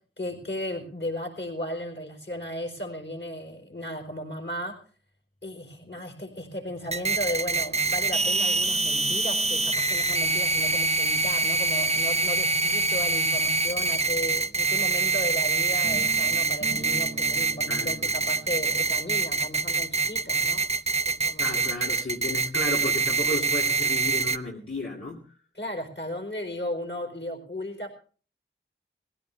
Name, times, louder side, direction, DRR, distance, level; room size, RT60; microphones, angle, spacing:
voice 1, 0.2-4.8 5.4-20.6 21.1-21.5 25.5-27.9, left 1 dB, 55° left, 3 dB, 4.3 m, -35 dB
sound 1, 6.9-24.4, right 3 dB, 30° right, 0.6 m, -25 dB
sound 2, 15.8-21.8, right 2 dB, 65° right, 1.1 m, -43 dB
voice 2, 17.7-18.1 21.4-25.2, left 2 dB, 75° left, -4 dB, 2.6 m, -33 dB
19.0 x 16.0 x 3.4 m, 0.40 s
wide cardioid pair, 55°, 21 cm